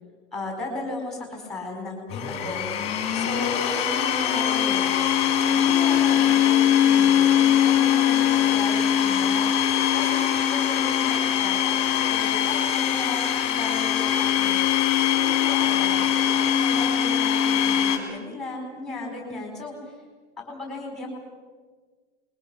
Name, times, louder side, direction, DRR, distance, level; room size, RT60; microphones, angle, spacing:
voice 1, 0.3-2.7 3.1-5.0 5.5-9.5 9.9-14.6 15.1-20.0 20.4-21.2, left 2 dB, ahead, 1 dB, 4.7 m, -35 dB
Domestic sounds home sounds, 2.1-18.0, left 10 dB, 15° left, 2.6 m, -22 dB
27.5 x 22.0 x 6.3 m, 1.5 s
supercardioid pair, 175°, 36 cm